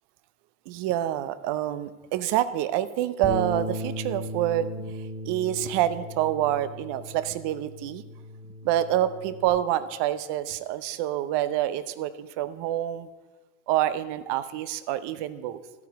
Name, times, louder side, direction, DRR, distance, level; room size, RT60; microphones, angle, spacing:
voice 1, 0.7-4.7 5.3-8.0 8.6-13.1 13.7-15.6, right 12 dB, 65° right, 13 dB, 0.8 m, -27 dB
Bass guitar, 3.2-9.5, equal, 30° right, 2.1 m, -36 dB
12.0 x 8.4 x 4.7 m, 1.2 s
supercardioid pair, 85°, 45 cm